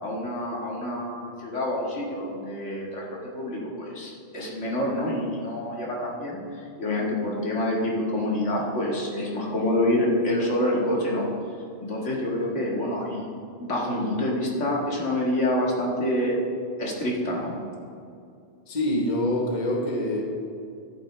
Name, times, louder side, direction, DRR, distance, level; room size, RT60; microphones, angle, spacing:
voice 1, 0.0-6.4 6.8-11.2 11.8-13.3 13.6-16.4 16.8-17.5, left 1 dB, 75° left, -3 dB, 2.2 m, -27 dB
voice 2, 18.7-20.2, left 1 dB, 40° left, -1 dB, 1.3 m, -25 dB
13.5 x 8.6 x 3.3 m, 2.4 s
omnidirectional pair, 1.2 m